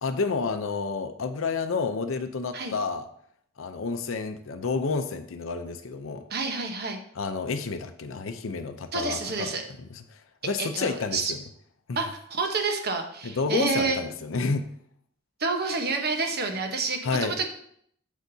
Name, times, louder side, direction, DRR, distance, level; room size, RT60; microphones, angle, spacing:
voice 1, 0.0-3.1 3.6-6.2 7.2-9.5 9.8-10.2 10.4-11.4 11.9-12.0 13.2-14.7 17.0-17.3, left 4 dB, 85° left, 7 dB, 0.6 m, -30 dB
voice 2, 6.3-7.0 8.9-9.6 10.6-11.3 11.9-14.0 15.4-17.5, right 3 dB, 55° right, 4 dB, 1.1 m, -29 dB
8.1 x 7.3 x 2.8 m, 0.67 s
head